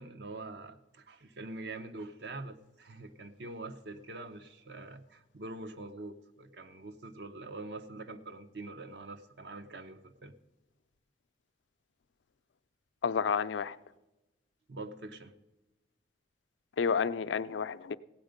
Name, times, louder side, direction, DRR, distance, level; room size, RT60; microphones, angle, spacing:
voice 1, 0.0-10.3 14.7-15.3, right 2 dB, 65° right, 0.8 m, -44 dB
voice 2, 13.0-13.8 16.8-18.0, left 6 dB, 90° left, 0.4 m, -30 dB
16.0 x 8.8 x 5.2 m
head